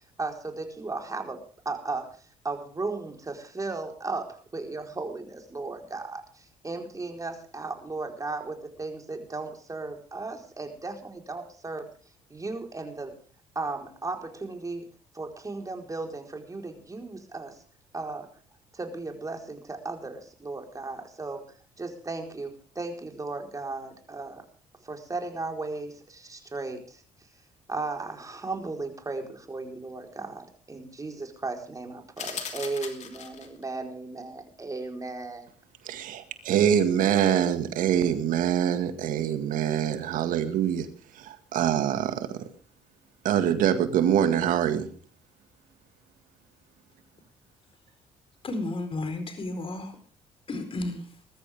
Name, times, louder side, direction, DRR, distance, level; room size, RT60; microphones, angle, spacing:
voice 1, 0.2-11.9 12.3-13.2 13.5-14.9 15.1-17.6 17.9-18.3 18.7-21.5 21.8-24.4 24.8-27.0 27.7-35.5, right 3 dB, 25° right, 3 dB, 4.5 m, -36 dB
sound 1, 32.2-33.6, left 7 dB, 55° left, 2.9 m, -38 dB
voice 2, 35.8-40.9 41.1-42.5 43.2-44.9, right 9 dB, 70° right, 9 dB, 2.0 m, -24 dB
voice 3, 48.4-50.0 50.5-51.1, left 2 dB, 40° left, 8 dB, 4.4 m, -32 dB
20.5 x 14.0 x 3.6 m, 0.41 s
supercardioid pair, 70°, 14 cm